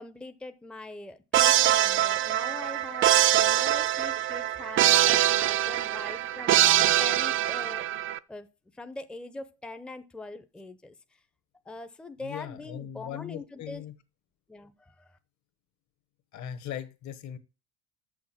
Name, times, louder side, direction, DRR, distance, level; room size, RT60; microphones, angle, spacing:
voice 1, 0.0-7.9 8.3-8.5 8.7-10.9 11.7-13.8 14.5-15.2, left 2 dB, 5° left, 0.6 m, -42 dB
sound 1, 1.3-8.2, right 12 dB, 35° right, 0.4 m, -23 dB
voice 2, 12.2-13.9 16.3-17.4, left 10 dB, 50° left, 1.3 m, -39 dB
7.0 x 6.5 x 7.4 m
cardioid pair, 120°, 35 cm